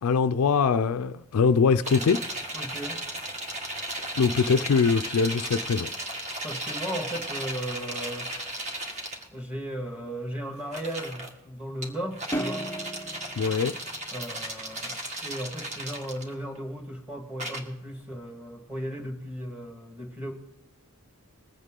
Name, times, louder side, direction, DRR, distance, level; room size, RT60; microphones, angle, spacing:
voice 1, 0.0-2.3 4.2-5.9 13.4-13.8, left 5 dB, 80° left, 0.4 m, -23 dB
sound 1, 1.8-9.2 10.6-11.3 11.8-16.6 17.4-17.6, right 1 dB, 35° right, 1.5 m, -35 dB
voice 2, 2.6-3.1 6.4-8.3 9.3-12.7 14.1-20.3, right 1 dB, 5° right, 1.9 m, -36 dB
sound 2, 12.3-14.9, right 1 dB, 10° left, 0.6 m, -35 dB
21.0 x 8.2 x 3.8 m
head